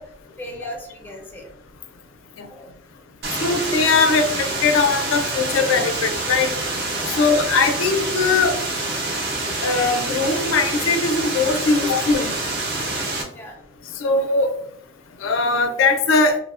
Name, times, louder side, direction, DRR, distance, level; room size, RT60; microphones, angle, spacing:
voice 1, 0.0-1.5 2.5-2.7 7.1-7.3 11.8-11.9 13.3-13.6, equal, 10° left, 0 dB, 0.4 m, -38 dB
sound 1, 3.2-13.2, right 2 dB, 55° right, 0.6 m, -26 dB
voice 2, 3.4-6.5 7.2-8.5 9.6-12.3 14.0-14.5 15.2-16.4, left 4 dB, 90° left, 6 dB, 0.4 m, -20 dB
3.0 x 2.0 x 2.3 m, 0.69 s
head